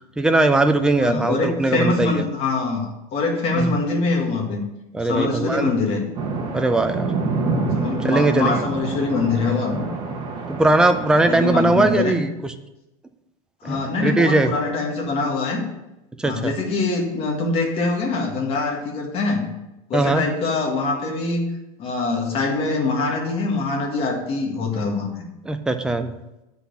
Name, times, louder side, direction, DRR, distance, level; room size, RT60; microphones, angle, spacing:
voice 1, 0.2-2.2 3.5-3.8 4.9-5.7 6.5-7.1 8.0-8.6 10.5-12.5 13.6-14.5 16.2-16.5 19.9-20.2 25.5-26.1, right 2 dB, 5° right, 7 dB, 0.3 m, -20 dB
voice 2, 1.0-4.6 5.0-6.1 7.7-9.9 11.3-12.2 13.6-15.6 16.2-19.5 19.9-21.5 21.8-25.1, left 3 dB, 30° left, 0 dB, 1.7 m, -24 dB
sound 1, 6.1-11.9, right 3 dB, 25° right, 1.2 m, -27 dB
7.9 x 4.2 x 6.8 m, 0.95 s
supercardioid pair, 155°, 19 cm